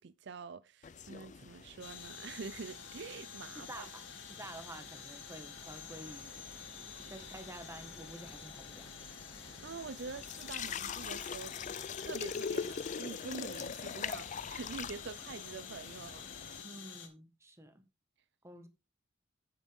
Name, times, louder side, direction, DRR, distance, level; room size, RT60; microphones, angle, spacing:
voice 1, 0.0-3.9 6.9-7.1 9.4-11.5 12.0-16.2, right 5 dB, 60° right, 0.5 m, -46 dB
sound 1, 0.8-16.6, left 6 dB, 40° left, 0.4 m, -44 dB
sound 2, 1.8-17.1, left 7 dB, 70° left, 2.3 m, -49 dB
voice 2, 3.5-4.0 4.3-6.5 7.1-8.9 16.6-17.8 18.4-18.7, right 1 dB, 15° right, 1.6 m, -49 dB
sound 3, 5.5-12.2, left 1 dB, 15° left, 0.9 m, -59 dB
9.2 x 8.8 x 3.6 m
head